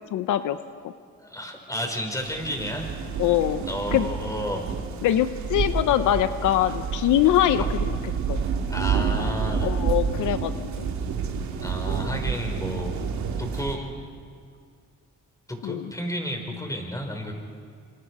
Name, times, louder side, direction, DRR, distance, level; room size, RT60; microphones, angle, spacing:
voice 1, 0.1-0.6 3.2-3.6 3.9-4.1 5.0-8.0 8.3-8.4 9.6-10.9 15.6-15.9, left 12 dB, 85° left, 11 dB, 0.8 m, -23 dB
voice 2, 1.2-2.9 3.2-3.3 3.7-4.7 7.6-7.7 8.7-9.7 11.6-12.9 13.4-13.9 15.5-17.3, equal, 10° left, 3 dB, 5.2 m, -32 dB
sound 1, 2.2-13.7, right 6 dB, 70° right, 2.7 m, -29 dB
28.0 x 27.0 x 4.9 m, 2.2 s
cardioid pair, 90°, 30 cm